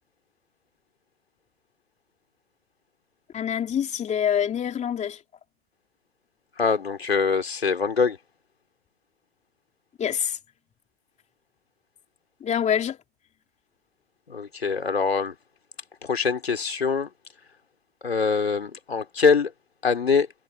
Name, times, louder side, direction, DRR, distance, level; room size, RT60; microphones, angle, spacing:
voice 1, 3.3-5.2 10.0-10.4 12.4-13.0, left 9 dB, 25° left, 2.9 m, -25 dB
voice 2, 6.6-8.2 14.3-15.3 16.0-17.1 18.0-19.5 19.8-20.3, left 5 dB, 85° left, 4.0 m, -23 dB
hypercardioid pair, 105°, 30 cm